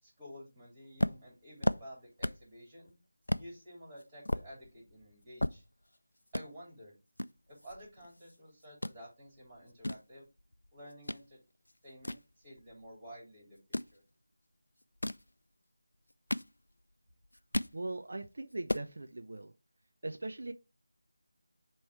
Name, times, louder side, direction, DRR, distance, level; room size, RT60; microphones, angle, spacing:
voice 1, 0.0-2.9 3.4-5.6 6.3-6.9 7.5-10.3 10.7-11.4 11.8-14.0, equal, 20° right, -3 dB, 3.4 m, -52 dB
sound 1, 1.0-2.5 2.9-3.0 3.3-3.5 4.0-6.0 6.3-6.5 7.2-8.4 8.6-9.0 9.5-11.2 11.6-12.9 13.6-14.0 14.8-15.3 15.9-16.9 17.2-17.8 18.2-18.3 18.5-18.9, left 1 dB, 85° left, 0.4 m, -35 dB
voice 2, 17.7-19.5 20.0-20.5, right 2 dB, 60° right, 6 dB, 0.6 m, -40 dB
7.1 x 3.1 x 4.7 m, 0.28 s
figure-of-eight pair, 165°, 0 cm